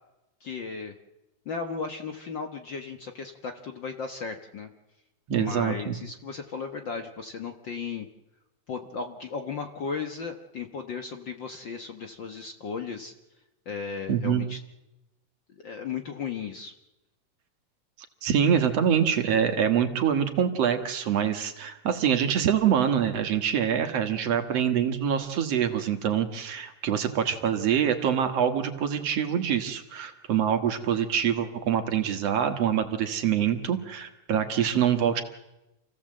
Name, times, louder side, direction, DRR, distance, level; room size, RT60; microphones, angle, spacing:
voice 1, 0.4-0.9 1.4-4.7 5.3-8.1 8.7-13.1 13.6-14.6 15.6-16.7, left 5 dB, 50° left, 6 dB, 1.5 m, -35 dB
voice 2, 5.3-6.0 14.1-14.4 18.2-35.2, right 8 dB, 60° right, 7 dB, 2.4 m, -25 dB
28.0 x 16.0 x 7.6 m, 0.96 s
omnidirectional pair, 3.3 m